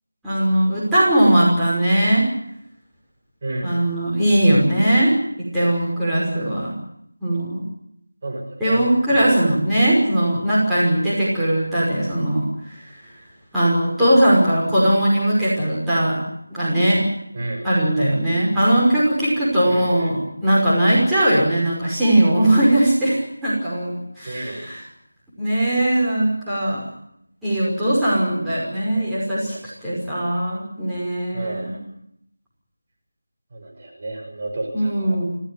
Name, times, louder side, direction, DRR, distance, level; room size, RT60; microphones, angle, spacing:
voice 1, 0.2-2.3 3.6-6.8 7.2-7.7 8.6-13.1 13.5-16.2 16.5-17.1 17.6-24.8 25.4-26.8 27.4-29.6 29.8-31.8 34.7-35.3, right 1 dB, 5° right, -11 dB, 5.7 m, -19 dB
voice 2, 3.4-3.8 8.2-8.9 9.1-9.4 17.3-17.6 19.6-20.1 24.2-24.7 28.9-29.0 29.5-29.6 31.3-31.8 33.5-35.2, right 2 dB, 30° right, 2 dB, 6.2 m, -31 dB
27.0 x 18.0 x 7.8 m, 0.74 s
figure-of-eight pair, 170°, 0 cm